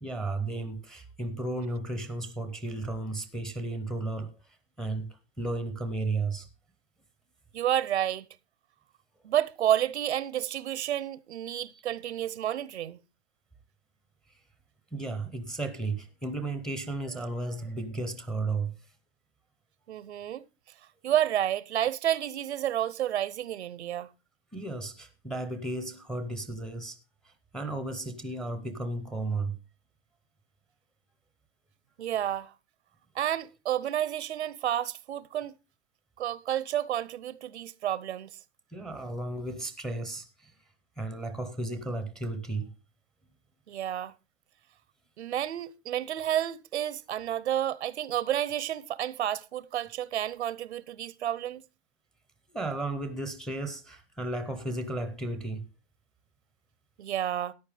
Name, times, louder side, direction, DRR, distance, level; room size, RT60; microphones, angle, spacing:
voice 1, 0.0-4.4 4.8-6.5 14.9-18.7 24.5-27.0 27.2-29.6 38.7-40.5 41.0-42.7 52.5-55.6, right 2 dB, ahead, 0.5 m, -34 dB
voice 2, 7.5-8.3 9.2-13.0 19.9-20.4 21.0-24.1 32.0-32.5 33.1-35.5 36.2-38.3 43.7-44.1 45.2-51.6 57.0-57.5, right 11 dB, 85° right, 0.8 m, -30 dB
14.0 x 9.7 x 3.3 m
hypercardioid pair, 155°, 32 cm